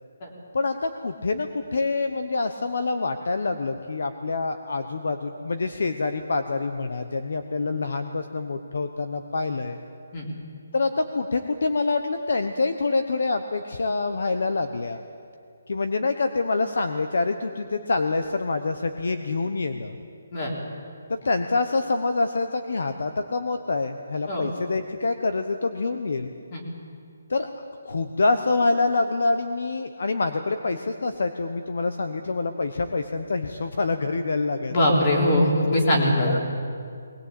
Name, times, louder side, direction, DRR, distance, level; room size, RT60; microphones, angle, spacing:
voice 1, 0.5-9.8 10.7-15.0 15.7-20.0 21.1-26.3 27.3-27.5 27.8-34.7 36.3-36.5, left 3 dB, 55° left, 7 dB, 1.1 m, -26 dB
voice 2, 34.7-36.3, left 1 dB, 25° left, -2 dB, 3.5 m, -21 dB
21.0 x 20.0 x 8.4 m, 2.3 s
hypercardioid pair, 180°, 0 cm